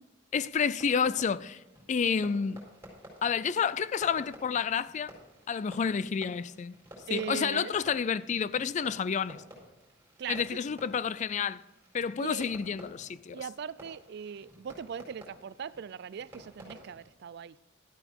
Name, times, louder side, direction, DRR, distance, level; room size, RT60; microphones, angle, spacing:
voice 1, 0.3-1.6 1.9-2.6 3.2-5.1 5.5-6.8 7.1-9.4 10.3-11.6 11.9-13.5, left 6 dB, 40° left, 0.3 m, -30 dB
Fireworks, 0.6-17.1, equal, 15° right, 4.4 m, -53 dB
voice 2, 7.1-7.7 10.2-10.4 12.2-12.5 13.3-17.5, right 7 dB, 60° right, 0.4 m, -39 dB
12.5 x 8.8 x 4.6 m
head